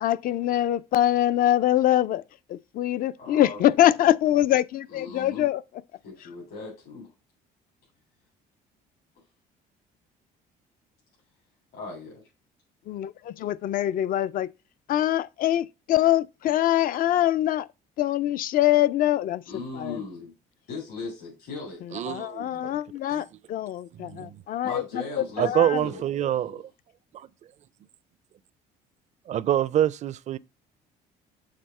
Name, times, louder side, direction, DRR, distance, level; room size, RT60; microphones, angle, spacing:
voice 1, 0.0-2.2 2.5-5.6 12.9-14.5 14.9-17.7 18.0-19.4 19.8-20.0 22.1-25.8, left 13 dB, 55° left, 0.4 m, -24 dB
voice 2, 3.2-3.7 4.9-5.5 6.0-7.1 11.7-12.2 19.5-20.3 20.7-21.9 24.6-26.0 26.3-26.6, left 3 dB, 75° left, 3.4 m, -38 dB
voice 3, 21.9-22.6 23.1-23.2 23.9-24.4 25.4-26.7 27.1-27.3 29.3-30.4, right 11 dB, 45° right, 0.4 m, -26 dB
6.6 x 3.6 x 5.4 m
cardioid pair, 110°, 17 cm